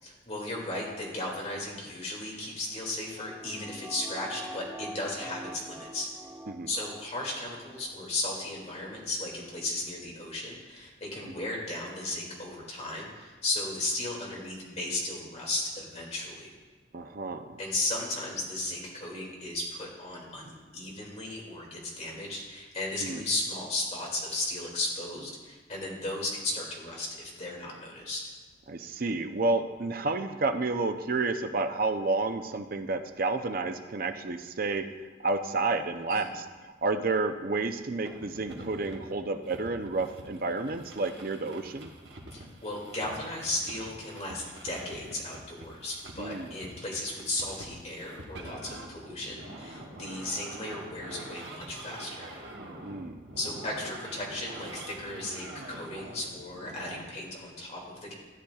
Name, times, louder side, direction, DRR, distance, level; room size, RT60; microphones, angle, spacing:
voice 1, 0.0-6.1 6.7-16.5 17.6-28.2 36.1-36.3 42.3-52.3 53.4-58.1, left 2 dB, 35° left, -3 dB, 2.4 m, -35 dB
sound 1, 2.7-7.5 7.8-7.9, right 1 dB, 5° right, 0.9 m, -45 dB
voice 2, 16.9-17.6 23.0-23.2 28.7-34.9 35.2-41.9 46.2-46.5 52.8-53.2, right 3 dB, 50° right, 8 dB, 0.6 m, -30 dB
sound 2, 38.0-57.0, right 1 dB, 65° right, 1.3 m, -45 dB
13.0 x 9.9 x 2.4 m, 1.4 s
head